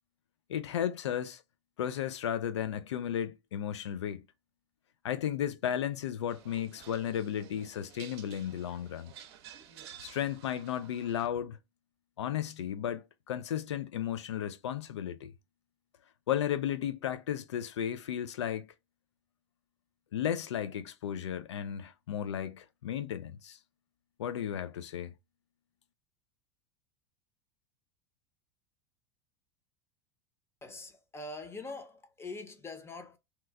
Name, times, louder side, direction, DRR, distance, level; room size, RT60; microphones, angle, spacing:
voice 1, 0.5-1.4 1.8-4.3 5.0-9.1 10.0-11.6 12.2-15.3 16.3-18.7 20.1-23.6 24.2-25.1, left 10 dB, 80° left, 0.4 m, -34 dB
sound 1, 6.3-11.3, right 10 dB, 65° right, 0.6 m, -52 dB
voice 2, 30.6-33.2, left 3 dB, 15° left, 0.8 m, -43 dB
2.9 x 2.2 x 3.5 m
hypercardioid pair, 85°, 14 cm